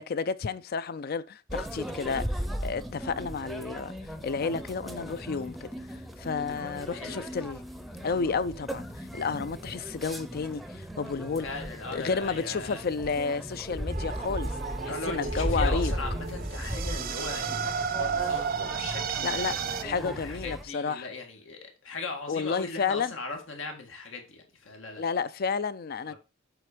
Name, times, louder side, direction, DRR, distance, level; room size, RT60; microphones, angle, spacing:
voice 1, 0.0-2.3 2.6-3.9 4.2-7.6 8.0-11.5 11.9-14.5 14.8-15.9 19.2-19.5 19.8-21.1 22.3-23.1 25.0-26.1, left 5 dB, 50° left, 0.5 m, -31 dB
sound 1, 1.5-20.6, equal, ahead, 0.6 m, -36 dB
voice 2, 6.8-7.3 11.4-12.8 14.9-25.0 26.1-26.2, left 3 dB, 85° left, 2.0 m, -39 dB
sound 2, 13.9-19.8, right 7 dB, 50° right, 0.5 m, -33 dB
7.8 x 4.3 x 5.0 m
head